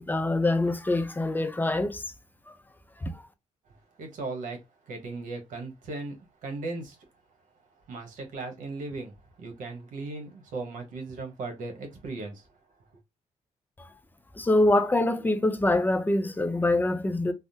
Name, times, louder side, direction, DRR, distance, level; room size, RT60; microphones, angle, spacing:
voice 1, 0.0-2.0 2.5-2.6 3.0-3.3 14.4-17.3, left 2 dB, 15° left, 0.4 m, -25 dB
voice 2, 4.0-4.6 4.9-7.0 7.9-12.5, right 3 dB, 90° right, 1.0 m, -37 dB
3.5 x 2.0 x 2.7 m
cardioid pair, 130°, 13 cm